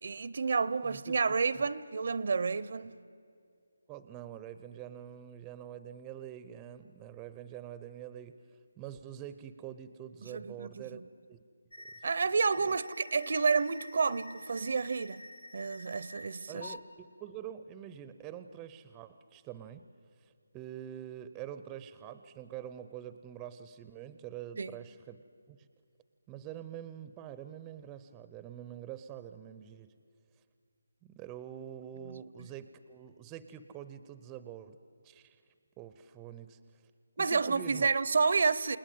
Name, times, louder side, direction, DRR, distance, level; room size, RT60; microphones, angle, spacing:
voice 1, 0.0-2.9 10.3-10.8 12.0-15.2 15.5-16.7 24.6-24.8 32.0-32.2 37.2-38.8, right 4 dB, 55° right, 0.7 m, -30 dB
voice 2, 0.8-1.2 1.6-1.7 3.9-8.4 8.8-11.0 11.3-11.4 11.8-12.0 12.6-12.8 16.5-19.9 20.2-25.7 26.3-29.9 31.0-34.8 35.0-35.4 35.8-36.9 37.2-37.9, right 10 dB, 15° right, 0.6 m, -46 dB
sound 1, 11.7-12.0 12.5-16.1 16.6-16.8, left 2 dB, 60° left, 2.2 m, -48 dB
29.0 x 19.0 x 9.2 m
figure-of-eight pair, 165°, 0 cm